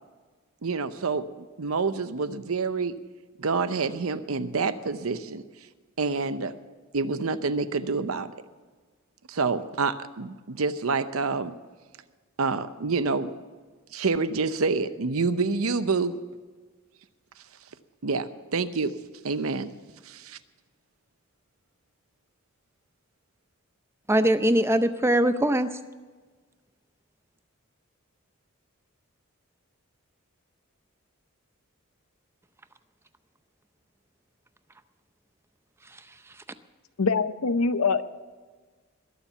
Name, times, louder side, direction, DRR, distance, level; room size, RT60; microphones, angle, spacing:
voice 1, 0.6-1.3 1.6-3.0 3.4-5.4 6.0-6.5 6.9-8.3 9.3-11.5 12.4-13.3 13.9-16.2 18.0-19.0 19.2-19.7 20.0-20.4, right 4 dB, 75° right, 12 dB, 0.7 m, -27 dB
voice 2, 24.1-25.8 35.9-36.4, right 1 dB, 10° right, 11 dB, 0.6 m, -23 dB
voice 3, 37.0-38.0, left 4 dB, 80° left, 12 dB, 0.7 m, -23 dB
21.0 x 7.2 x 6.9 m, 1.4 s
head